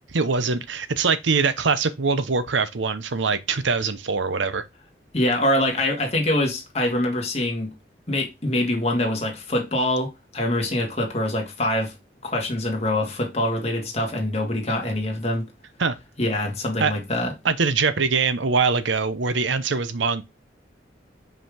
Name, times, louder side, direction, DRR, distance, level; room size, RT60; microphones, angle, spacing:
voice 1, 0.1-4.6 15.8-16.0 16.8-16.9 17.4-20.2, right 4 dB, 90° right, 0.8 m, -23 dB
voice 2, 5.1-7.7 8.1-12.0 12.2-15.5 16.2-17.3, left 1 dB, 35° left, 1.8 m, -24 dB
5.3 x 5.0 x 3.6 m
head